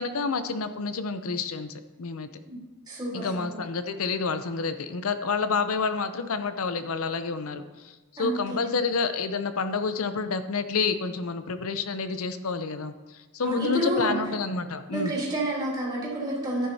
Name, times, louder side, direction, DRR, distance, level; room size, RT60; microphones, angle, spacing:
voice 1, 0.0-2.3 3.1-7.9 8.2-12.9 13.3-15.1, left 4 dB, 75° left, 10 dB, 0.7 m, -29 dB
voice 2, 2.9-3.5 8.2-8.8 13.4-14.1 14.9-16.7, right 1 dB, 20° right, -6 dB, 3.3 m, -29 dB
12.0 x 10.0 x 2.8 m, 1.2 s
head